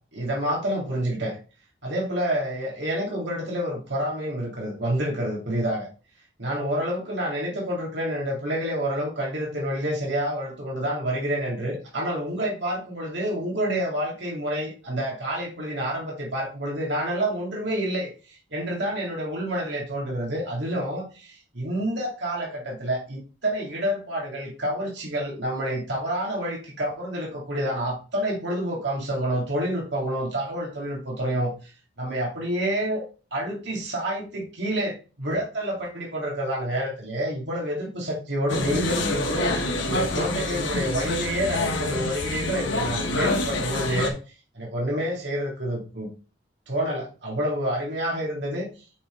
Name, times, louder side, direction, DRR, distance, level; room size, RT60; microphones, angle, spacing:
voice 1, 0.1-1.4 1.8-5.9 6.4-31.7 32.0-33.0 33.3-39.5 39.8-44.2 44.5-46.1 46.7-48.7, right 1 dB, 70° right, -3 dB, 2.3 m, -28 dB
sound 1, 38.5-44.1, left 2 dB, 85° left, 1.5 m, -27 dB
7.9 x 4.1 x 3.8 m, 0.35 s
head